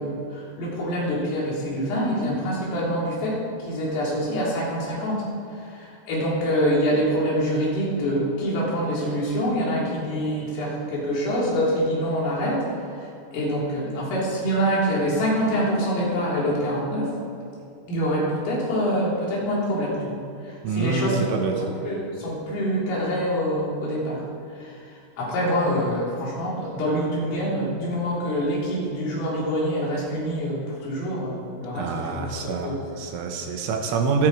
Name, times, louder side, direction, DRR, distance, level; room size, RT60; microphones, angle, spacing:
voice 1, 0.0-5.2 5.6-12.7 13.0-13.1 13.3-17.1 17.9-24.2 24.6-24.8 25.2-32.8, equal, 75° left, -6 dB, 6.1 m, -25 dB
voice 2, 20.6-21.6 31.7-34.3, right 4 dB, 75° right, 3 dB, 3.5 m, -26 dB
25.5 x 8.8 x 4.8 m, 2.5 s
omnidirectional pair, 5.9 m